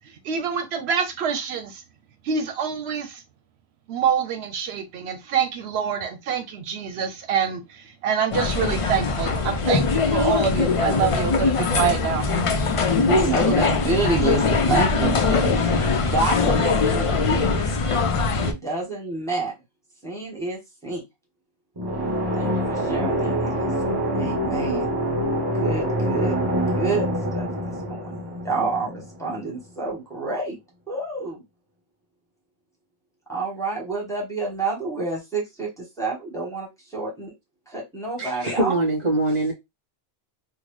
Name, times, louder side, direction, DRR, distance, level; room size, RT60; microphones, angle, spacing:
voice 1, 0.3-1.8 2.3-3.2 3.9-7.6 8.0-12.3, right 7 dB, 80° right, 0.9 m, -26 dB
sound 1, 8.3-18.5, left 4 dB, 50° left, 0.4 m, -21 dB
voice 2, 13.0-17.5 18.4-19.5 20.0-21.0 22.3-24.9 25.6-26.4 26.7-30.6 30.9-31.4 33.3-37.3 37.7-38.8, right 3 dB, 5° left, 1.2 m, -28 dB
sound 2, 21.8-29.4, equal, 25° right, 1.2 m, -25 dB
voice 3, 38.2-39.5, right 2 dB, 40° right, 1.5 m, -23 dB
3.7 x 2.1 x 3.1 m
omnidirectional pair, 1.1 m